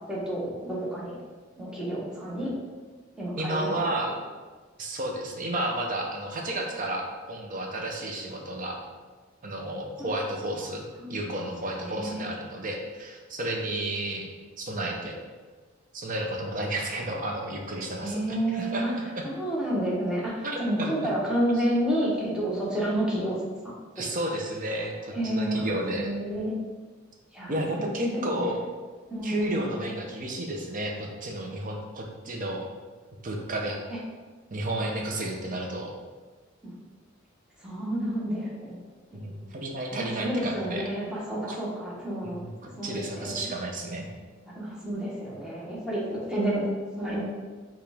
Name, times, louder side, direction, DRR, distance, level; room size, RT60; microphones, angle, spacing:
voice 1, 0.1-1.1 1.6-2.5 3.2-3.8 11.0-11.2 11.8-12.3 18.0-18.9 19.3-23.4 25.1-26.5 27.3-28.5 29.1-29.7 33.9-34.0 36.6-36.7 37.6-38.8 39.1-39.3 39.9-42.4 42.8-43.3 44.5-46.7 47.0-47.2, right 1 dB, 5° right, -6 dB, 0.9 m, -30 dB
voice 2, 3.4-4.1 4.8-8.8 9.4-10.8 11.1-14.3 14.6-15.2 15.9-19.3 20.4-20.9 24.0-26.1 27.5-28.7 29.2-32.7 33.2-33.8 34.5-35.9 39.1-40.9 41.5-41.6 42.2-44.1, right 1 dB, 40° right, 1 dB, 0.6 m, -32 dB
4.8 x 2.4 x 3.3 m, 1.4 s
head